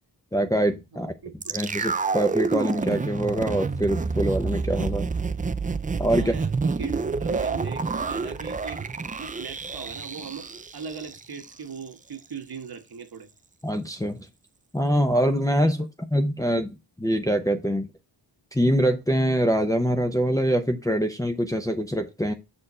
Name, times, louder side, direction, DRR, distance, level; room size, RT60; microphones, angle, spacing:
voice 1, 0.3-1.1 1.5-5.1 6.0-6.3 13.6-14.2 14.7-15.8 16.1-16.7 17.0-17.9 18.5-22.3, equal, 10° left, 0.7 m, -24 dB
voice 2, 0.9-1.5 6.1-8.9 9.2-13.3 15.6-15.9, right 6 dB, 55° right, 1.4 m, -40 dB
sound 1, 1.4-11.5 11.8-11.9, right 4 dB, 20° right, 0.3 m, -28 dB
6.6 x 4.4 x 4.3 m
wide cardioid pair, 155°, 44 cm